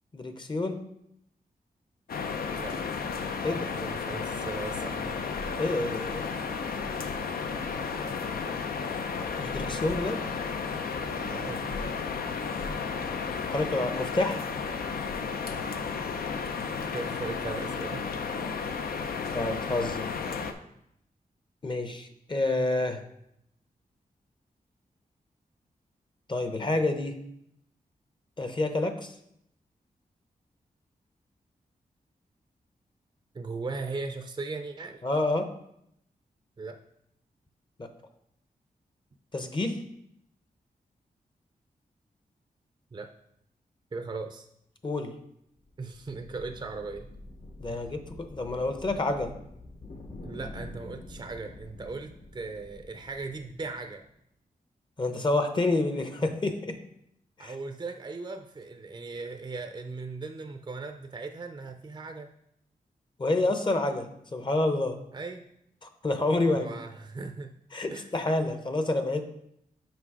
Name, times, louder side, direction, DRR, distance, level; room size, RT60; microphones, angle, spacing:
voice 1, 0.1-0.8 3.4-3.7 5.6-6.4 9.4-10.2 13.5-14.4 19.3-20.1 21.6-23.0 26.3-27.2 28.4-29.1 35.0-35.5 37.8-37.9 39.3-39.8 44.8-45.1 47.6-49.3 55.0-56.8 57.4-57.5 63.2-65.0 65.8-66.8 67.7-69.3, left 2 dB, 30° left, 7 dB, 0.7 m, -28 dB
sound 1, 2.1-20.5, left 5 dB, 80° left, 0.6 m, -33 dB
voice 2, 3.5-5.2 11.3-11.8 16.9-18.1 33.3-35.0 36.6-36.8 42.9-43.1 43.9-44.5 45.8-47.1 47.7-47.9 50.2-54.0 57.4-62.3 65.1-65.4 66.5-67.6 67.9-68.1, right 3 dB, 30° right, 6 dB, 0.5 m, -38 dB
sound 2, 45.6-54.1, left 1 dB, 55° left, 1.0 m, -47 dB
6.1 x 4.9 x 4.8 m, 0.76 s
wide cardioid pair, 80°, 15 cm